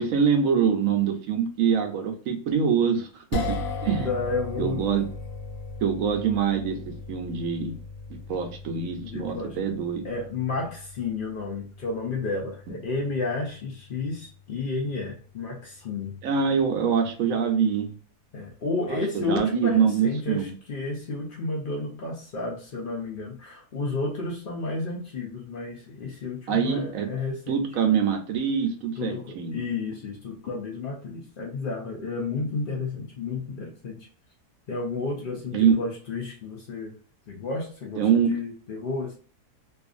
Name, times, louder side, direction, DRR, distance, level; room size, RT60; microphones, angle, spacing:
voice 1, 0.0-4.1 4.6-5.1 5.8-7.8 8.1-10.0 16.2-17.9 18.9-20.5 26.5-27.1 27.5-29.6 35.5-35.8 38.0-38.4, right 7 dB, 65° right, 4 dB, 0.9 m, -24 dB
sound 1, 3.3-15.6, left 3 dB, 70° left, 0.9 m, -38 dB
voice 2, 4.0-4.8 9.0-9.6 10.0-16.2 18.3-27.6 29.0-34.1 34.7-37.0 37.3-39.2, left 3 dB, 90° left, -1 dB, 0.4 m, -31 dB
2.6 x 2.4 x 2.4 m, 0.40 s
omnidirectional pair, 1.7 m